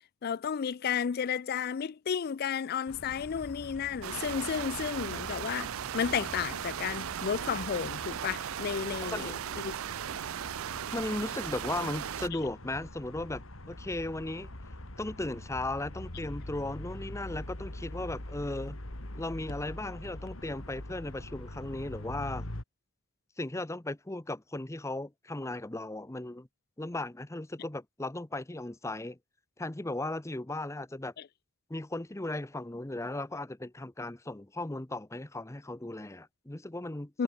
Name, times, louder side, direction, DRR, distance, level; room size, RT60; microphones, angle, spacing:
voice 1, 0.2-9.7 31.2-31.3 37.1-37.2, left 7 dB, 45° left, 0.4 m, -33 dB
sound 1, 2.9-22.6, left 1 dB, 75° left, 3.0 m, -44 dB
sound 2, 4.0-12.3, right 9 dB, 75° right, 0.4 m, -37 dB
voice 2, 10.9-14.5 15.0-18.8 19.2-22.5 23.4-26.5 26.8-29.2 29.6-31.1 31.7-37.2, left 2 dB, 15° left, 0.7 m, -36 dB
head